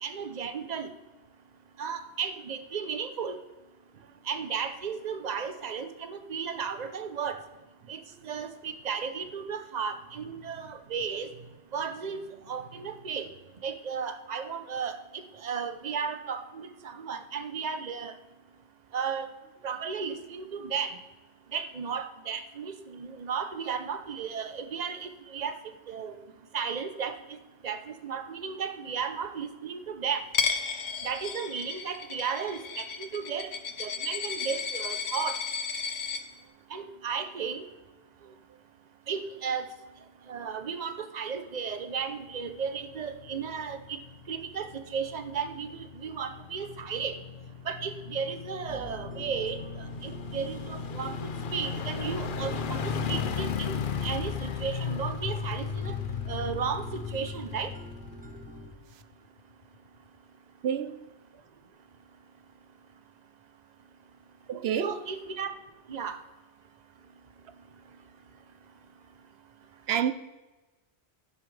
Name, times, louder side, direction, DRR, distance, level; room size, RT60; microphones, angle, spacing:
voice 1, 0.0-0.9 1.8-3.4 4.3-7.4 7.9-11.3 11.7-12.2 12.5-13.3 13.6-18.1 18.9-19.3 19.6-21.0 21.5-26.2 26.5-27.4 27.6-30.2 31.0-33.5 33.8-35.4 36.7-37.6 39.1-39.7 40.3-44.0 44.3-47.2 47.6-55.9 56.3-57.7 64.8-65.5 65.9-66.2, right 6 dB, 45° right, 0.9 m, -34 dB
voice 2, 7.8-8.2 58.2-58.4 60.6-61.1 64.5-65.0 69.9-70.1, right 8 dB, 75° right, 0.9 m, -30 dB
Coin (dropping), 30.3-36.2, left 5 dB, 80° left, 1.2 m, -33 dB
sound 1, 42.5-59.0 59.4-59.5, left 6 dB, 55° left, 0.8 m, -36 dB
sound 2, 48.7-58.7, right 1 dB, 10° right, 0.6 m, -47 dB
12.0 x 9.7 x 3.3 m
omnidirectional pair, 1.1 m